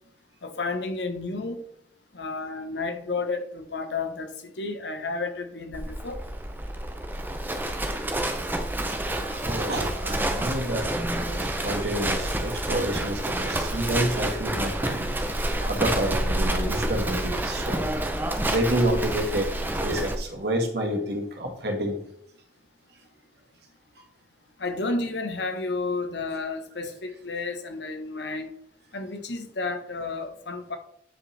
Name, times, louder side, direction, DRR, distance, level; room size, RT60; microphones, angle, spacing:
voice 1, 0.4-1.6 2.1-6.2 24.6-28.5 28.9-30.8, left 3 dB, 75° left, 7 dB, 1.1 m, -31 dB
Livestock farm animals working animals, 5.7-20.2, right 1 dB, 10° right, 0.6 m, -28 dB
voice 2, 9.2-15.1 15.6-17.8 18.4-22.0, right 1 dB, 60° right, 2 dB, 1.6 m, -29 dB
9.1 x 5.3 x 3.4 m, 0.70 s
head